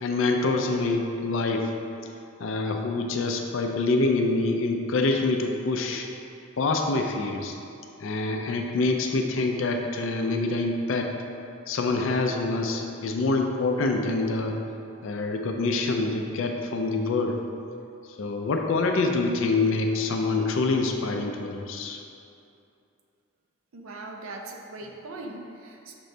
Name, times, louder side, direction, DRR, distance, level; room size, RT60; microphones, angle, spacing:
voice 1, 0.0-1.7 2.4-6.1 6.6-7.6 8.0-11.1 11.7-14.6 15.0-17.4 18.2-22.0, left 3 dB, 75° left, 3 dB, 0.4 m, -26 dB
voice 2, 23.7-25.9, right 2 dB, 85° right, 1 dB, 0.5 m, -40 dB
6.0 x 2.6 x 3.2 m, 2.6 s
head